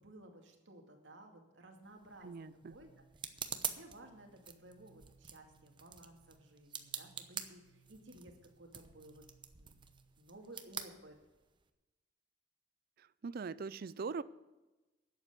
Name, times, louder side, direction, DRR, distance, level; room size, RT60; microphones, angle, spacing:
voice 1, 0.0-2.9 3.5-9.2 9.6-9.8 10.2-11.2, right 1 dB, 80° right, 3 dB, 2.3 m, -56 dB
sound 1, 1.8-11.7, right 7 dB, 25° right, 0.8 m, -47 dB
voice 2, 2.2-2.8 13.0-14.2, right 4 dB, 55° right, 18 dB, 0.5 m, -42 dB
sound 2, 2.6-10.2, right 6 dB, 25° left, 2.2 m, -69 dB
11.5 x 8.1 x 8.2 m, 1.1 s
head